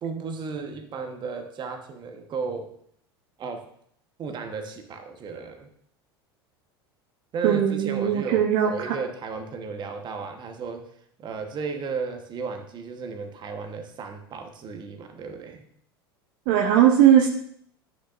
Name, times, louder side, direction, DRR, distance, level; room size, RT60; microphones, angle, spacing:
voice 1, 0.0-2.7 3.4-3.7 4.2-5.7 7.3-10.9 11.2-15.6, right 5 dB, 35° right, 5 dB, 1.1 m, -34 dB
voice 2, 7.4-9.0 16.5-17.3, right 10 dB, 60° right, 2 dB, 0.9 m, -19 dB
9.8 x 6.1 x 2.5 m, 0.65 s
hypercardioid pair, 80°, 13 cm